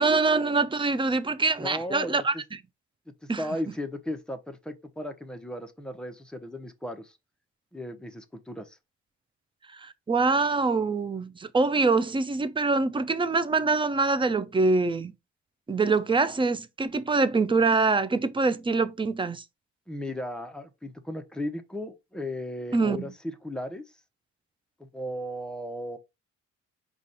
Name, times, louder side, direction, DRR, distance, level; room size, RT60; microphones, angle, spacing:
voice 1, 0.0-2.6 3.3-3.5 9.7-15.1 15.7-19.4 22.7-23.0, right 3 dB, 15° right, 0.5 m, -24 dB
voice 2, 1.6-2.1 3.2-7.2 7.7-8.8 19.9-23.8 24.8-26.0, left 1 dB, 5° left, 0.8 m, -36 dB
5.0 x 2.5 x 4.2 m
cardioid pair, 90°, 30 cm